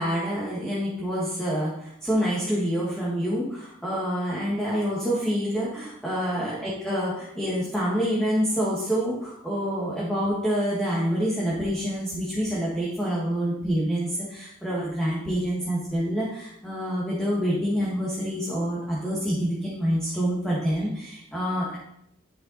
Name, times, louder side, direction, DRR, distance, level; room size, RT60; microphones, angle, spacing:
voice 1, 0.0-21.8, equal, 5° left, -6 dB, 1.7 m, -27 dB
12.0 x 5.6 x 4.1 m, 0.76 s
head